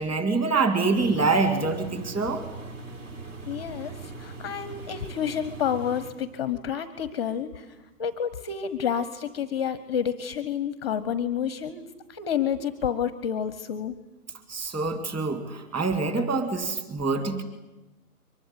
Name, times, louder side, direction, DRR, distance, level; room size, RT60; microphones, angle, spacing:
voice 1, 0.0-2.4 14.5-17.4, right 3 dB, 10° right, 7 dB, 2.2 m, -25 dB
Engine, 0.9-6.1, right 3 dB, 55° right, 5.5 m, -40 dB
voice 2, 3.5-7.7 8.0-14.0, left 8 dB, 20° left, 14 dB, 0.8 m, -29 dB
23.5 x 19.5 x 9.8 m, 1.0 s
figure-of-eight pair, 145°, 45 cm